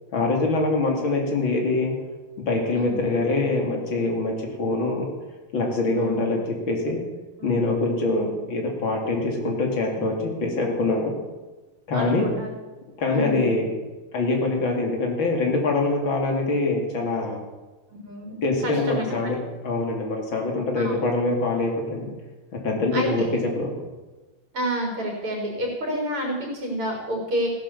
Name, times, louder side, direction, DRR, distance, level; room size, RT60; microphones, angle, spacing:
voice 1, 0.1-1.9 2.5-5.1 5.5-7.0 7.4-11.1 11.9-12.2 13.0-13.7 14.1-17.4 18.4-19.4 19.6-22.1 22.6-23.3 23.6-23.7, left 2 dB, 65° left, 1 dB, 3.4 m, -24 dB
voice 2, 2.7-3.0 5.9-6.4 7.4-7.5 11.9-12.5 13.1-13.5 17.9-19.0 20.7-20.9 22.9-23.3 24.5-27.5, equal, 85° right, 0 dB, 5.1 m, -29 dB
16.0 x 10.5 x 7.1 m, 1.2 s
omnidirectional pair, 2.4 m